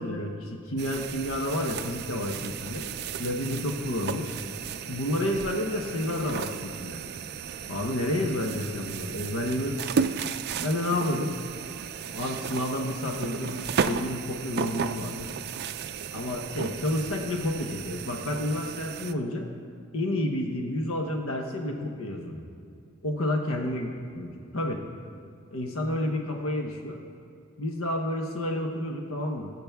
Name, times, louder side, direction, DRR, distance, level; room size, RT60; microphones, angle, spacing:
voice 1, 0.0-2.9 3.2-4.3 4.9-7.0 7.7-10.1 10.6-11.3 12.1-15.3 16.1-19.5 19.9-22.5 23.0-23.9 24.2-24.8 25.5-27.0 27.6-29.5, left 1 dB, 75° left, 2 dB, 1.0 m, -30 dB
sound 1, 0.8-19.1, right 6 dB, 50° right, 0.4 m, -34 dB
21.0 x 7.7 x 3.5 m, 2.4 s
head